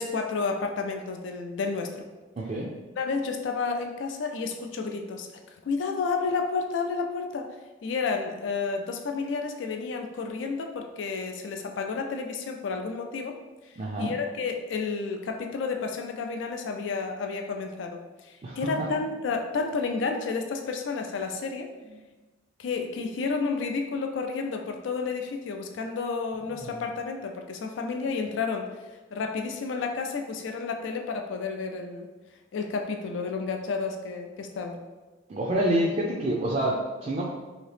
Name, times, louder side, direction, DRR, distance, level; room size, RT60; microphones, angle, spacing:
voice 1, 0.0-2.0 3.0-7.5 7.8-13.4 13.6-21.7 22.6-28.7 29.1-32.1 32.5-34.8, left 4 dB, 70° left, 4 dB, 0.4 m, -31 dB
voice 2, 2.4-2.7 13.8-14.1 18.4-18.9 35.3-37.2, right 1 dB, 35° right, -3 dB, 0.4 m, -27 dB
2.8 x 2.7 x 3.2 m, 1.2 s
head